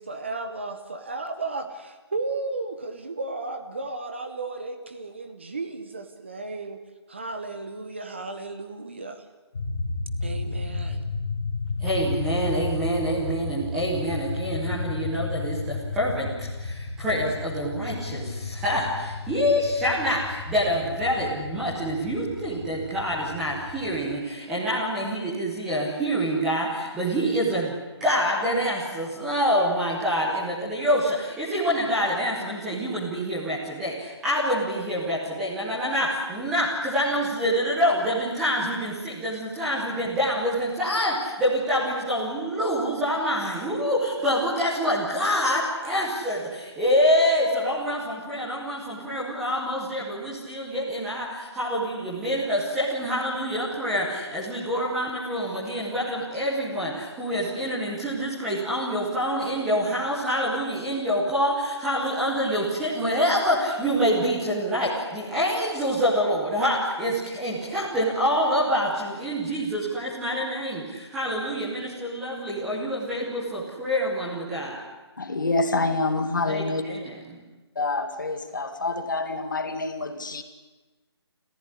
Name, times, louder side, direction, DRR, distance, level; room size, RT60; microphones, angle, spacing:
voice 1, 0.0-6.8 7.1-9.2 10.2-11.1, right 3 dB, 25° right, 7 dB, 1.1 m, -34 dB
sound 1, 9.5-24.0, left 3 dB, 25° left, 3.6 m, -33 dB
voice 2, 11.8-27.7 28.0-74.8 76.5-77.4, equal, ahead, -7 dB, 1.0 m, -26 dB
voice 3, 75.2-76.8 77.8-80.4, left 3 dB, 45° left, 7 dB, 2.2 m, -27 dB
27.0 x 15.0 x 9.9 m, 1.2 s
hypercardioid pair, 180°, 14 cm